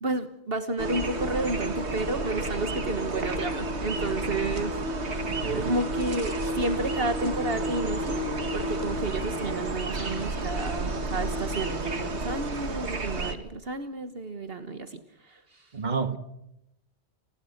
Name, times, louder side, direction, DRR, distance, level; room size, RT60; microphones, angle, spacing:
voice 1, 0.0-4.8 5.6-8.3 8.5-15.7, right 2 dB, 60° right, 1.6 m, -31 dB
sound 1, 0.8-13.3, right 1 dB, 90° right, 2.3 m, -31 dB
voice 2, 5.3-5.7 15.7-16.2, right 5 dB, 45° right, 1.8 m, -29 dB
29.5 x 20.5 x 5.9 m
omnidirectional pair, 1.1 m